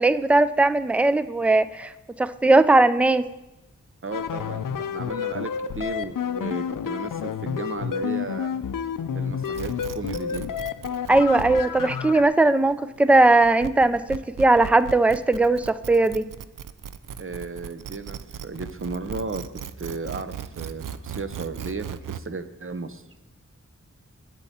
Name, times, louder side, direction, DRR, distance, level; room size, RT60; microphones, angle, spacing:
voice 1, 0.0-1.9 2.2-3.2 11.1-16.2, right 2 dB, 5° right, 14 dB, 0.3 m, -19 dB
voice 2, 4.0-5.5 5.8-8.5 9.1-10.7 17.2-19.4 19.8-23.0, right 3 dB, 40° right, 9 dB, 0.7 m, -34 dB
sound 1, 4.1-12.2, left 7 dB, 90° left, 0.5 m, -30 dB
sound 2, 9.4-22.2, right 8 dB, 80° right, 0.5 m, -37 dB
11.5 x 8.5 x 4.2 m, 1.0 s
wide cardioid pair, 80°, 31 cm